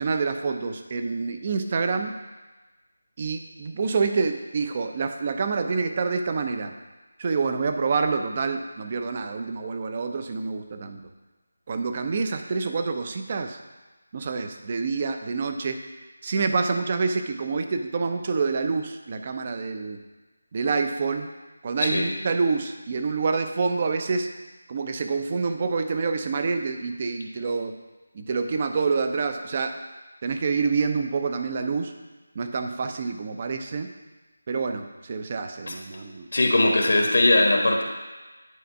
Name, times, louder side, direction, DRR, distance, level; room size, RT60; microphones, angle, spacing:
voice 1, 0.0-2.1 3.2-6.7 7.2-11.0 11.7-13.6 14.1-15.8 16.2-20.0 20.5-21.3 21.6-24.3 24.7-27.7 28.1-29.7 30.2-31.9 32.3-33.9 34.5-36.3, right 4 dB, 35° right, 6 dB, 0.5 m, -27 dB
voice 2, 36.3-37.8, left 2 dB, 70° left, 2 dB, 1.2 m, -20 dB
9.3 x 3.4 x 5.3 m, 1.2 s
figure-of-eight pair, 165°, 0 cm